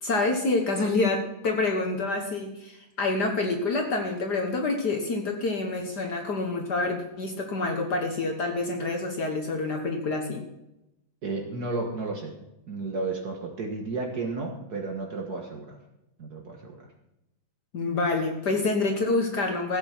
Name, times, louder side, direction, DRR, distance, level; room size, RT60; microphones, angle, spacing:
voice 1, 0.0-10.4 17.7-19.8, left 3 dB, 55° left, 2 dB, 1.9 m, -27 dB
voice 2, 11.2-12.3 12.7-15.8 16.2-16.9, right 3 dB, 50° right, 1 dB, 2.0 m, -33 dB
15.0 x 8.7 x 6.1 m, 0.90 s
omnidirectional pair, 2.2 m